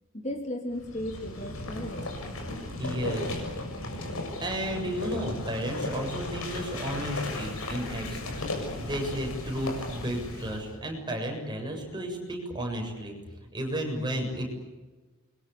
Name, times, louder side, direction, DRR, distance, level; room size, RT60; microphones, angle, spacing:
voice 1, 0.1-2.2, left 1 dB, 35° left, 4 dB, 3.3 m, -35 dB
sound 1, 0.7-10.7, left 2 dB, 75° left, 6.9 m, -36 dB
voice 2, 2.8-3.4 4.4-13.2 13.5-14.5, equal, 20° right, 2 dB, 7.3 m, -33 dB
29.0 x 23.5 x 8.6 m, 1.2 s
head